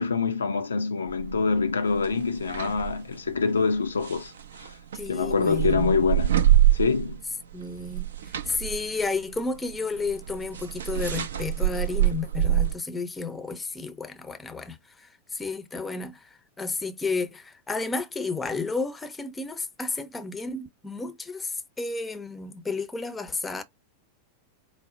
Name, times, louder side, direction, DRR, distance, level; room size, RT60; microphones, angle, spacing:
voice 1, 0.0-4.7 5.1-6.3 6.7-7.2, left 5 dB, 70° left, 0.4 m, -25 dB
sound 1, 1.1-1.4 1.9-3.0 3.9-7.3 7.6-12.8, right 12 dB, 65° right, 0.5 m, -25 dB
voice 2, 4.9-5.9 7.5-23.6, left 4 dB, 10° left, 0.6 m, -32 dB
4.7 x 2.1 x 3.6 m
figure-of-eight pair, 90°, 0 cm